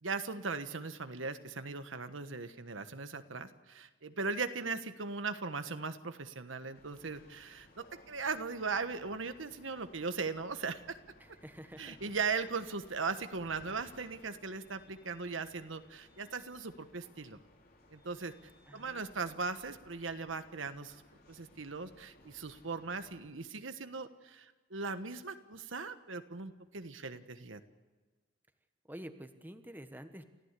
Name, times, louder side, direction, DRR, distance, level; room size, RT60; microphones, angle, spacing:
voice 1, 0.0-11.0 11.8-17.4 17.9-18.3 18.7-21.0 21.3-27.6, right 4 dB, 85° right, 9 dB, 1.3 m, -39 dB
sound 1, 6.7-23.2, left 1 dB, 50° left, 4.0 m, -61 dB
voice 2, 11.2-12.0 12.4-12.5 18.7-19.2 28.9-30.2, equal, 10° right, 7 dB, 1.3 m, -49 dB
29.0 x 15.5 x 8.3 m, 1.3 s
head